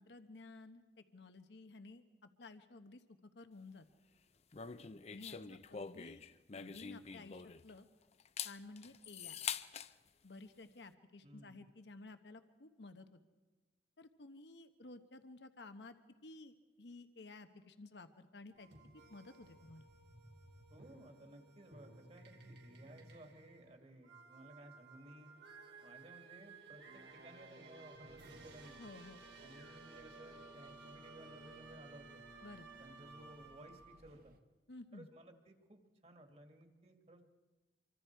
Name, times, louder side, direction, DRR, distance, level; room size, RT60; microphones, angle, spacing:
voice 1, 0.0-3.8 5.1-6.2 6.5-7.9 8.4-9.4 10.2-13.2 14.0-15.9 16.2-18.7 18.9-19.9 28.8-29.2 32.4-32.7 34.7-35.1, left 2 dB, 75° left, 9 dB, 1.0 m, -54 dB
sound 1, 4.5-7.8 8.2-9.9, left 7 dB, 35° left, 0.6 m, -45 dB
voice 2, 11.2-11.6 20.7-25.3 25.8-28.8 29.4-32.2 32.8-34.3 34.9-37.2, right 1 dB, 35° right, 5 dB, 2.2 m, -58 dB
sound 2, 18.5-34.0, right 3 dB, 80° right, 3.2 m, -57 dB
sound 3, 28.1-34.4, right 1 dB, 55° right, 1.4 m, -68 dB
26.0 x 24.5 x 4.7 m, 1.2 s
head